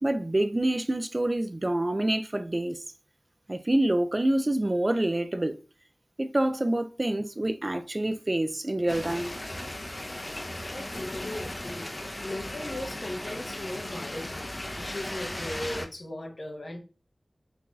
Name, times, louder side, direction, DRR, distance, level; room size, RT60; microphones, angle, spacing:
voice 1, 0.0-2.8 3.5-5.6 6.2-9.3, right 1 dB, 40° right, 0.4 m, -27 dB
sound 1, 8.9-15.9, left 1 dB, 40° left, 0.6 m, -36 dB
voice 2, 10.6-11.9 12.2-14.5 14.8-16.8, left 1 dB, 65° left, 0.9 m, -37 dB
4.5 x 2.6 x 2.3 m
wide cardioid pair, 40°, 0 cm